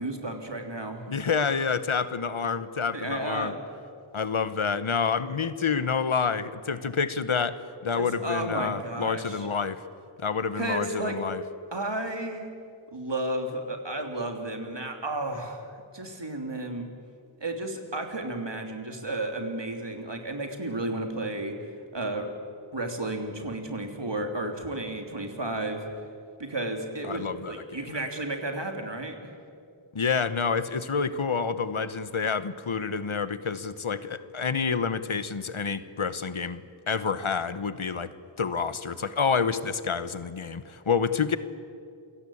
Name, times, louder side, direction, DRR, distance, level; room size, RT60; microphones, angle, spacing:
voice 1, 0.0-1.0 2.9-3.6 7.9-9.5 10.5-11.1 11.7-12.5 12.9-16.9 17.4-21.5 21.9-22.3 22.7-25.9 26.4-29.2, right 2 dB, 60° right, 4 dB, 3.1 m, -32 dB
voice 2, 1.1-3.5 4.1-9.8 10.2-11.4 27.0-27.9 29.9-41.4, left 5 dB, 85° left, 13 dB, 1.1 m, -28 dB
28.0 x 17.5 x 8.6 m, 2.4 s
wide cardioid pair, 40°, 48 cm